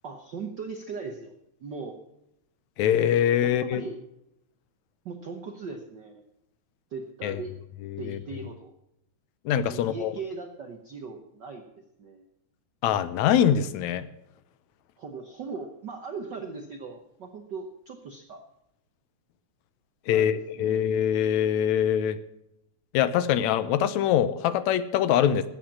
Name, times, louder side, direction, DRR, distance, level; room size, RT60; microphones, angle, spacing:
voice 1, 0.0-1.3 1.6-2.0 3.4-4.0 5.0-6.2 6.9-7.5 8.0-8.7 9.6-11.6 12.0-12.2 15.0-18.4 20.1-20.9 25.2-25.4, right 4 dB, 65° right, 5 dB, 1.0 m, -39 dB
voice 2, 2.8-3.8 7.2-7.4 7.9-8.5 9.5-10.1 12.8-14.1 20.1-22.2 22.9-25.4, left 9 dB, 75° left, 14 dB, 2.0 m, -24 dB
13.0 x 8.7 x 7.3 m, 0.83 s
omnidirectional pair, 3.4 m